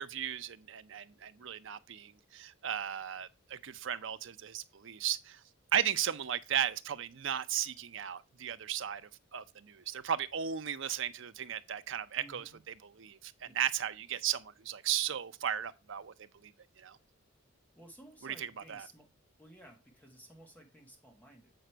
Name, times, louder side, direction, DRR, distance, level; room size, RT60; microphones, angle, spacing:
voice 1, 0.0-5.4 5.7-9.0 9.3-16.1 16.4-16.5 16.8-17.0 18.2-18.9, right 9 dB, 60° right, 0.6 m, -36 dB
voice 2, 12.2-12.6 13.4-13.5 17.7-19.1 19.4-21.5, right 1 dB, 10° left, 1.4 m, -56 dB
7.9 x 5.0 x 4.5 m
head